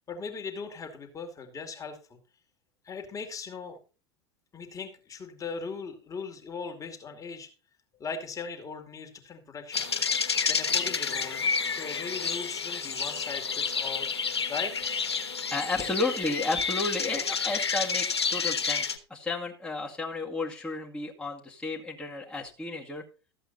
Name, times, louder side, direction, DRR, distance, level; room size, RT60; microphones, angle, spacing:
voice 1, 0.1-2.2 2.8-3.8 4.5-7.5 8.0-10.0 10.5-14.1 14.5-14.8, left 5 dB, 25° left, 5 dB, 2.4 m, -39 dB
sound 1, 9.7-19.0, left 5 dB, 80° left, 1.2 m, -30 dB
voice 2, 15.5-23.0, left 3 dB, 5° left, -4 dB, 2.3 m, -32 dB
14.0 x 8.0 x 4.1 m, 0.34 s
figure-of-eight pair, 80°, 13 cm